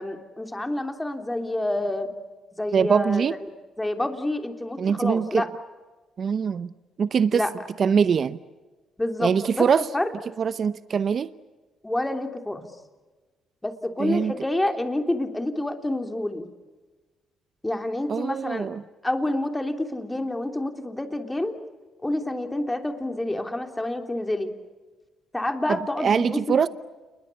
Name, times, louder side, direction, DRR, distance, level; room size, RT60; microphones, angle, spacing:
voice 1, 0.0-2.1 2.6-3.2 3.8-5.5 7.3-7.5 9.0-10.1 11.8-12.6 13.6-16.5 17.6-18.7 19.0-21.5 22.0-24.5 25.3-26.6, left 1 dB, 10° left, 3.2 m, -28 dB
voice 2, 2.7-3.3 4.8-5.4 6.2-6.7 7.0-7.4 7.8-8.4 9.2-9.9 10.4-11.3 14.0-14.3 18.1-18.8 26.0-26.7, right 6 dB, 50° right, 0.8 m, -23 dB
29.0 x 21.5 x 8.4 m
cardioid pair, 90°, 0 cm